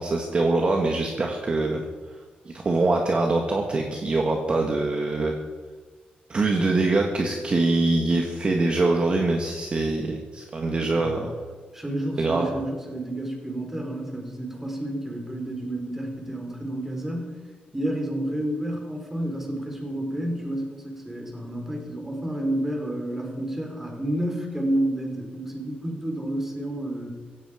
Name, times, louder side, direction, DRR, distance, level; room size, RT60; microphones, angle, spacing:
voice 1, 0.0-1.8 2.4-5.3 6.3-11.3 12.2-12.5, right 2 dB, 35° right, 2 dB, 1.7 m, -24 dB
voice 2, 10.7-11.2 11.7-17.4 17.7-27.1, right 1 dB, 10° right, 2 dB, 4.0 m, -30 dB
16.5 x 16.0 x 5.1 m, 1.4 s
wide cardioid pair, 135°, 3 cm